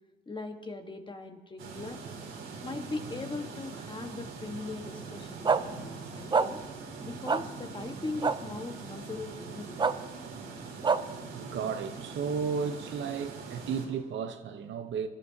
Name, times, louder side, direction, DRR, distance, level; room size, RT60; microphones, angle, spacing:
voice 1, 0.3-2.0 2.6-6.6 7.0-9.8, left 3 dB, 25° left, 1.4 m, -39 dB
sound 1, 1.6-13.9, right 4 dB, 85° right, 2.5 m, -43 dB
sound 2, 5.4-5.6 6.3-6.5 7.3-7.4 8.2-8.3 9.8-9.9 10.8-11.0, right 5 dB, 25° right, 0.5 m, -24 dB
voice 2, 11.3-15.1, right 6 dB, 70° right, 0.9 m, -34 dB
23.0 x 11.5 x 2.8 m
cardioid pair, 90°, 20 cm